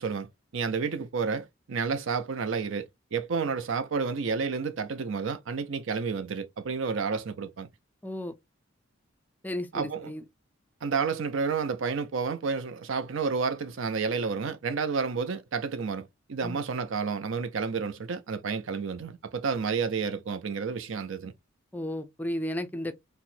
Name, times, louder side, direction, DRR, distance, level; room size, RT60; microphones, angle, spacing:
voice 1, 0.0-7.7 9.7-10.1 10.8-21.3, right 5 dB, 70° right, 0.5 m, -30 dB
voice 2, 8.0-8.4 9.4-10.2 16.4-16.6 21.7-22.9, left 1 dB, 10° left, 0.4 m, -33 dB
4.2 x 2.1 x 2.6 m
head